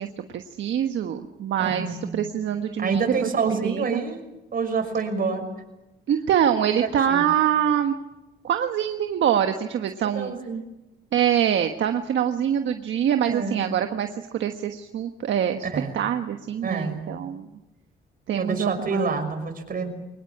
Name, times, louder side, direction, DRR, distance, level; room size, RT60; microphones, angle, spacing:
voice 1, 0.0-4.0 6.1-7.9 8.4-10.3 11.1-17.5 18.3-19.1, right 9 dB, 70° right, 6 dB, 1.4 m, -25 dB
voice 2, 1.6-2.2 2.8-4.2 4.5-5.4 7.1-7.2 10.0-10.6 13.3-13.7 15.7-15.9 16.6-17.1 18.4-19.9, right 4 dB, 45° right, 6 dB, 6.1 m, -27 dB
23.5 x 20.5 x 8.7 m, 0.97 s
cardioid pair, 90°, 20 cm